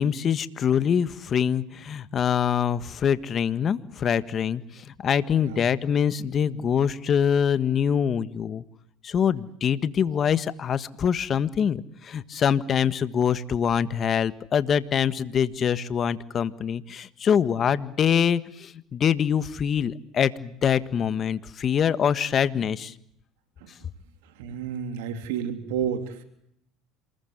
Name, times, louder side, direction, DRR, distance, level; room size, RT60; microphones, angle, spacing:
voice 1, 0.0-8.6 9.0-22.9, left 8 dB, 40° left, 14 dB, 1.6 m, -24 dB
voice 2, 24.2-26.2, right 8 dB, 80° right, 8 dB, 3.3 m, -31 dB
27.5 x 21.0 x 8.1 m, 0.71 s
supercardioid pair, 100°, 0 cm